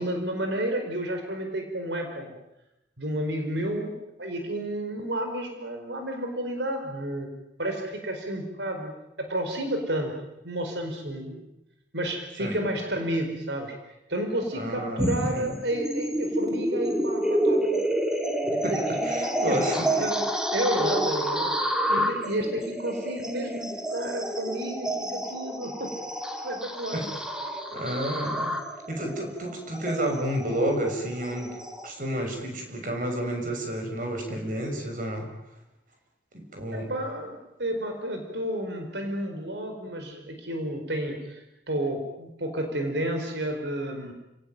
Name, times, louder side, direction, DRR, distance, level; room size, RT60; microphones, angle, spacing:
voice 1, 0.0-2.3 3.0-3.9 4.2-7.3 7.6-8.9 9.2-10.1 10.4-11.4 11.9-13.7 14.1-17.8 18.5-19.6 20.0-21.5 21.9-25.9 26.4-27.1 36.7-44.1, right 1 dB, 80° right, 4 dB, 4.6 m, -31 dB
voice 2, 14.5-15.5 18.5-19.9 26.9-27.1 27.7-28.6 28.9-31.5 31.8-35.3 36.3-36.9, right 1 dB, 50° right, 3 dB, 6.2 m, -30 dB
sound 1, 15.0-31.9, right 1 dB, 5° right, 2.5 m, -29 dB
29.5 x 18.0 x 9.0 m, 0.90 s
head